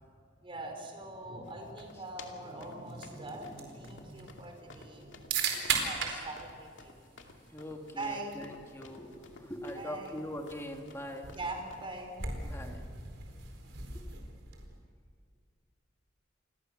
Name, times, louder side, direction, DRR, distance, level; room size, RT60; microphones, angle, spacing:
voice 1, 0.4-5.5 5.8-6.9 7.9-8.4 9.7-10.2 11.3-12.2, right 2 dB, 30° right, 2 dB, 5.0 m, -42 dB
sound 1, 1.4-12.0, left 3 dB, 75° left, 2.5 m, -54 dB
sound 2, 2.9-14.8, right 5 dB, 75° right, 4.4 m, -40 dB
voice 2, 7.5-11.4 12.4-12.9 13.9-14.0, left 1 dB, 15° left, 2 dB, 2.5 m, -42 dB
28.5 x 22.0 x 6.8 m, 2.2 s
head